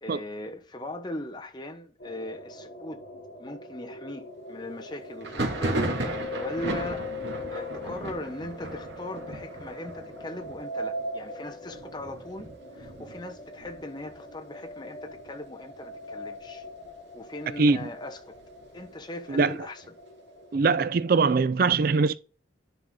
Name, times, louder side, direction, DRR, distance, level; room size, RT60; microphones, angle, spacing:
voice 1, 0.0-3.0 3.4-7.1 7.5-16.6 17.1-18.4 18.7-19.9, left 1 dB, 25° left, 1.0 m, -39 dB
sound 1, 2.0-21.1, left 1 dB, 50° left, 4.2 m, -41 dB
Thunder, 5.2-14.7 15.0-15.7 15.9-16.9 17.3-19.0, right 1 dB, 65° right, 2.3 m, -35 dB
voice 2, 20.5-22.2, right 4 dB, 50° right, 0.4 m, -22 dB
10.5 x 5.5 x 3.8 m
head